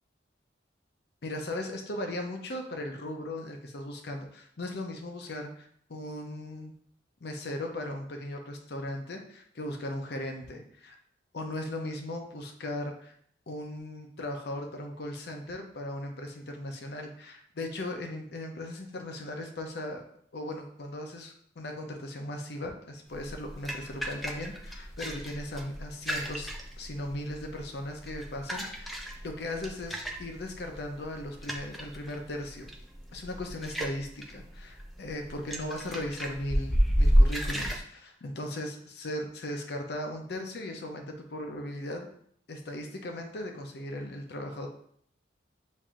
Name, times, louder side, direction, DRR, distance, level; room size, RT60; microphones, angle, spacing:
voice 1, 1.2-6.7 7.2-11.0 11.3-13.1 13.5-20.1 20.3-26.5 26.8-32.7 33.1-42.1 42.5-44.7, left 1 dB, 60° left, 3 dB, 0.6 m, -37 dB
sound 1, 23.1-37.8, equal, ahead, 0.4 m, -31 dB
7.2 x 2.6 x 2.4 m, 0.65 s
head